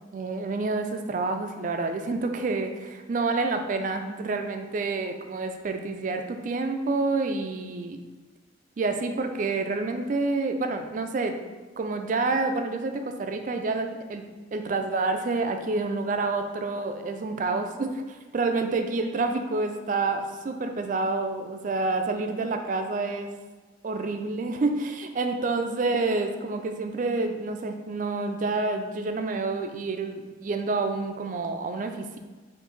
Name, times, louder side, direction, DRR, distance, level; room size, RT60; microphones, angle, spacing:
voice 1, 0.1-8.0 8.8-11.4 11.8-23.3 23.8-32.2, right 3 dB, 40° right, 6 dB, 0.3 m, -28 dB
4.7 x 2.6 x 3.8 m, 1.3 s
head